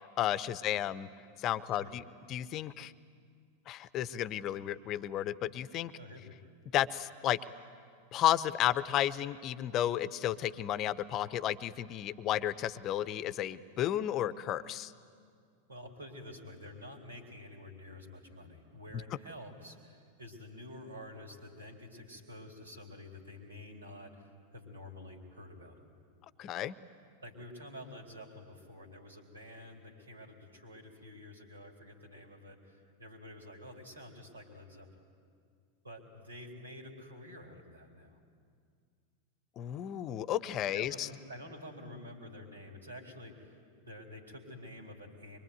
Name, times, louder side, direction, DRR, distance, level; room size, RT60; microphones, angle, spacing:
voice 1, 0.2-1.1 1.4-2.0 2.3-2.9 3.7-5.9 6.7-7.4 8.1-14.9 26.4-26.7 39.6-41.1, left 12 dB, 35° left, 17 dB, 0.8 m, -32 dB
voice 2, 5.9-6.4 15.7-25.9 27.2-34.9 35.8-38.2 40.7-45.4, left 1 dB, 75° right, 3 dB, 3.9 m, -49 dB
24.5 x 23.5 x 9.5 m, 2.2 s
figure-of-eight pair, 90°, 0 cm